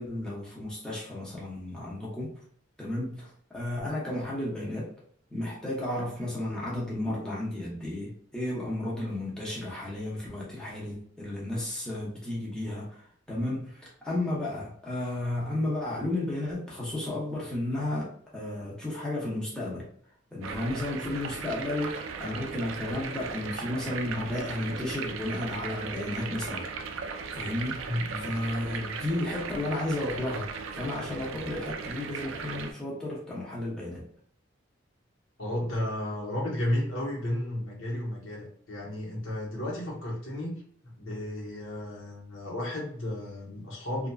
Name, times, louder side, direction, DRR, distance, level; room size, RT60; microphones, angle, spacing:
voice 1, 0.0-2.4 2.8-4.9 5.3-19.9 20.3-26.7 27.3-27.9 28.2-34.0, left 1 dB, 5° left, -6 dB, 0.7 m, -33 dB
sound 1, 20.4-32.7, right 5 dB, 85° right, 0.4 m, -37 dB
voice 2, 27.8-28.3 35.4-44.1, left 1 dB, 85° left, -4 dB, 1.1 m, -33 dB
2.8 x 2.5 x 2.2 m, 0.62 s
head